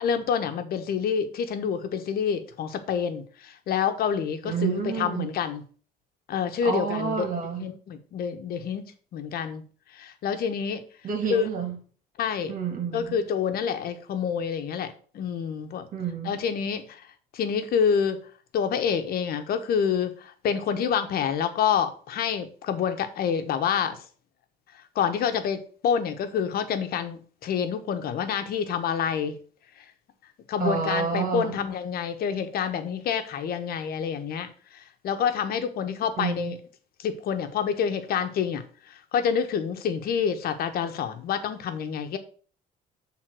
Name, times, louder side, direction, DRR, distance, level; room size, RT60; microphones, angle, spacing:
voice 1, 0.0-5.6 6.3-7.3 7.6-8.8 9.1-9.6 9.9-10.8 11.3-11.5 12.2-12.6 12.9-15.9 16.2-17.0 17.3-18.3 18.5-24.0 24.9-29.4 30.5-36.6 37.0-42.2, left 7 dB, 65° left, 1.2 m, -27 dB
voice 2, 4.4-5.3 6.6-7.7 11.0-11.8 12.5-13.2 15.9-16.3 30.6-31.6 36.2-36.5, right 6 dB, 50° right, 2.7 m, -29 dB
7.6 x 3.8 x 6.2 m
cardioid pair, 110°, 17 cm